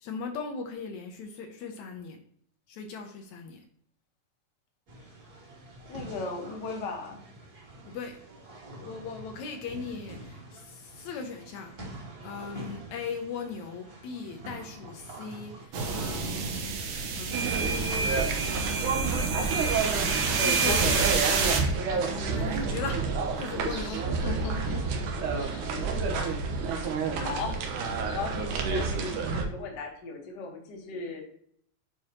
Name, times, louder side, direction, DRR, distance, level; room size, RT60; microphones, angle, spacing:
voice 1, 0.0-2.2 2.7-3.7 7.9-8.2 8.8-18.1 18.4-20.1 20.4-21.0 21.9-23.0 23.4-24.1 26.8-26.9 27.2-27.3, left 5 dB, 75° left, 4 dB, 2.0 m, -39 dB
sound 1, 4.9-15.7, right 2 dB, 35° right, 1.8 m, -46 dB
voice 2, 5.9-7.2 20.6-21.0 23.7-25.8 26.6-26.9 27.2-31.2, left 4 dB, 45° left, 1 dB, 1.5 m, -38 dB
sound 2, 15.7-21.6, right 5 dB, 65° right, 2.0 m, -30 dB
sound 3, 17.3-29.4, right 4 dB, 85° right, 2.5 m, -29 dB
9.8 x 4.5 x 2.9 m, 0.66 s
omnidirectional pair, 3.5 m